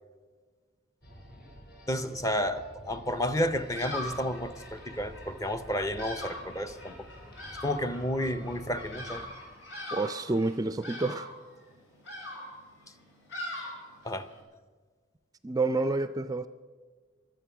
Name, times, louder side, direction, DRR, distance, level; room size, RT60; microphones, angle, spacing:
sound 1, 1.0-9.3, equal, 55° left, 4.7 m, -50 dB
voice 1, 1.9-7.1 7.6-9.2 14.0-14.3, equal, 15° left, 11 dB, 0.6 m, -31 dB
Bird vocalization bird call bird song, 3.4-14.4, left 1 dB, 75° left, 5.2 m, -42 dB
voice 2, 9.9-11.3 15.4-16.5, right 3 dB, 20° right, 12 dB, 0.4 m, -29 dB
24.0 x 8.4 x 5.8 m, 1.5 s
head